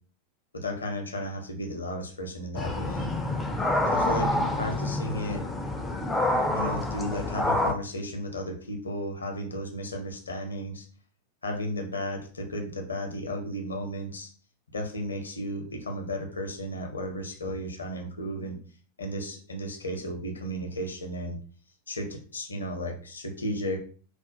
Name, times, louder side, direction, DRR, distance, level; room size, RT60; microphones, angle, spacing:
voice 1, 0.5-3.1 3.9-5.4 6.5-10.9 11.4-14.3 14.7-18.6 19.0-21.4 21.9-23.8, equal, 75° left, 3 dB, 0.5 m, -34 dB
sound 1, 2.5-7.7, left 1 dB, 10° left, 0.4 m, -27 dB
2.3 x 2.1 x 2.6 m, 0.41 s
figure-of-eight pair, 90°, 0 cm